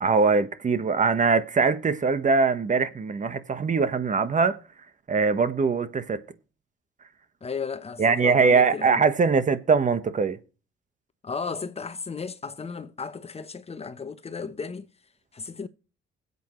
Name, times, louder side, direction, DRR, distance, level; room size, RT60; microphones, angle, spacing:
voice 1, 0.0-4.6 5.1-6.2 8.0-10.4, right 4 dB, 40° right, 1.3 m, -22 dB
voice 2, 7.4-9.0 11.2-14.9 15.3-15.7, left 5 dB, 30° left, 1.0 m, -34 dB
21.5 x 8.3 x 3.2 m
cardioid pair, 90°, 20 cm